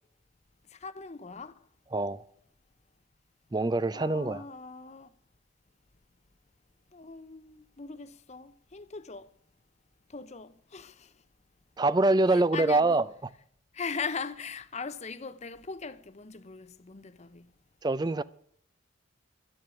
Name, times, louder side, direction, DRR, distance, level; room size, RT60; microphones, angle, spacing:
voice 1, 0.7-1.5 3.9-5.1 6.9-9.3 10.1-11.1 12.3-13.0 13.7-17.5, left 5 dB, 35° left, 0.7 m, -40 dB
voice 2, 1.9-2.2 3.5-4.4 11.8-13.1 17.8-18.2, right 2 dB, 20° right, 0.4 m, -24 dB
12.5 x 8.6 x 9.0 m
head